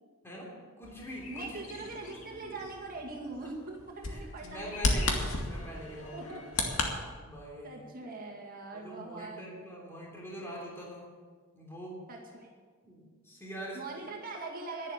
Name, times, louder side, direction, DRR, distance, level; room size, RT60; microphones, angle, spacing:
voice 1, 0.2-2.6 4.1-6.4 7.1-8.1 8.7-11.1 11.5-12.0 12.8-14.1, equal, 10° left, -3 dB, 3.3 m, -44 dB
Bird vocalization bird call bird song, 0.8-6.9, left 2 dB, 85° left, 2.1 m, -35 dB
voice 2, 1.3-5.3 6.1-6.6 7.6-9.5 12.1-12.5 13.7-14.9, right 3 dB, 40° right, -1 dB, 2.2 m, -42 dB
11.5 x 11.0 x 7.3 m, 1.5 s
head